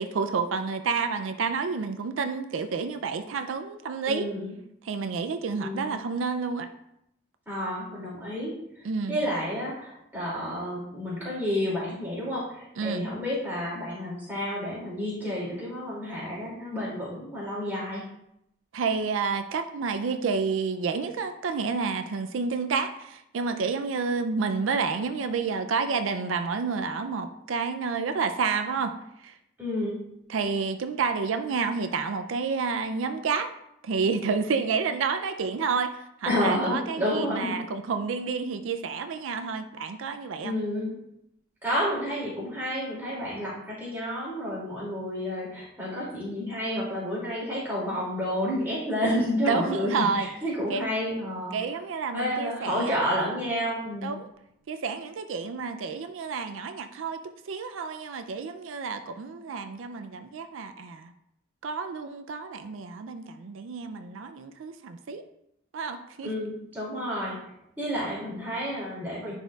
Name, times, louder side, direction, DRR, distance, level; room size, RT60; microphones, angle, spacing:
voice 1, 0.0-4.3 4.8-6.7 8.8-9.2 12.8-13.1 18.7-28.9 29.2-29.4 30.3-33.5 33.8-40.5 49.5-50.3 50.7-50.9 51.5-53.0 54.0-54.3 54.7-57.2 57.5-61.1 61.6-65.2 65.7-66.3, right 5 dB, 90° right, 8 dB, 0.4 m, -29 dB
voice 2, 4.0-4.5 5.6-5.9 7.5-18.0 29.6-30.0 36.2-37.6 40.4-40.9 41.6-51.5 52.1-54.1 66.2-67.4 67.8-69.3, equal, 10° right, -7 dB, 2.4 m, -30 dB
10.0 x 4.2 x 2.3 m, 0.79 s
head